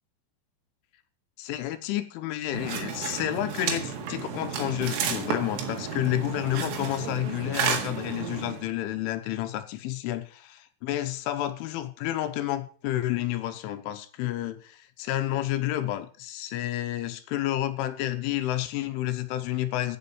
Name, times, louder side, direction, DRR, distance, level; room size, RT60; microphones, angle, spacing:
voice 1, 1.4-20.0, left 13 dB, 85° left, 3.4 m, -30 dB
sound 1, 2.5-8.7, right 6 dB, 85° right, 4.4 m, -32 dB
14.5 x 6.4 x 7.0 m
omnidirectional pair, 5.6 m